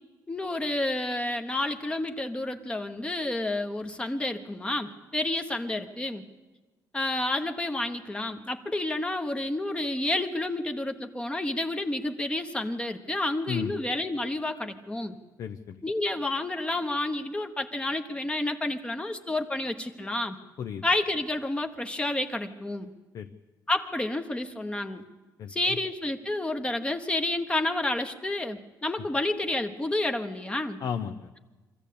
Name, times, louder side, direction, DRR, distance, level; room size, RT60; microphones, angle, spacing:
voice 1, 0.3-6.2 6.9-15.2 15.8-20.4 20.8-22.9 23.7-25.0 25.5-30.8, left 2 dB, 15° left, 6 dB, 1.1 m, -30 dB
voice 2, 15.4-15.8 20.6-20.8 23.1-23.3 25.4-25.5 30.8-31.4, left 7 dB, 55° left, 7 dB, 0.7 m, -34 dB
23.5 x 14.5 x 8.5 m, 1.2 s
cardioid pair, 140°, 7 cm